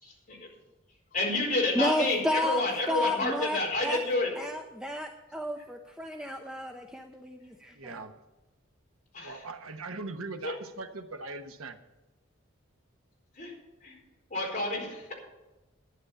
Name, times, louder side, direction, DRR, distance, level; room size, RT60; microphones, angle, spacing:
voice 1, 0.0-0.4 1.1-4.3 9.1-9.4 10.4-10.6 13.3-13.5 13.8-14.0 14.3-15.1, left 2 dB, 40° left, -2 dB, 4.4 m, -29 dB
voice 2, 1.8-2.6 2.9-4.0 4.4-8.0, left 1 dB, 5° right, 4 dB, 0.6 m, -32 dB
voice 3, 7.7-8.2 9.2-11.8, right 3 dB, 85° right, 7 dB, 1.1 m, -40 dB
11.5 x 10.0 x 5.6 m, 1.1 s
head